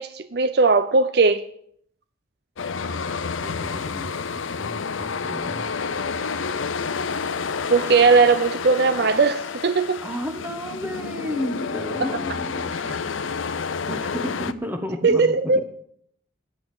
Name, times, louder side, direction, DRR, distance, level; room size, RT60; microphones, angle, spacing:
voice 1, 0.0-1.4 7.7-10.0 15.0-15.7, right 4 dB, 55° right, 12 dB, 0.5 m, -18 dB
sound 1, 2.6-14.5, left 5 dB, 90° left, 0.7 m, -29 dB
voice 2, 3.3-5.7 10.0-13.0 13.9-15.7, equal, 10° right, 5 dB, 1.5 m, -32 dB
10.5 x 8.3 x 9.4 m, 0.66 s
head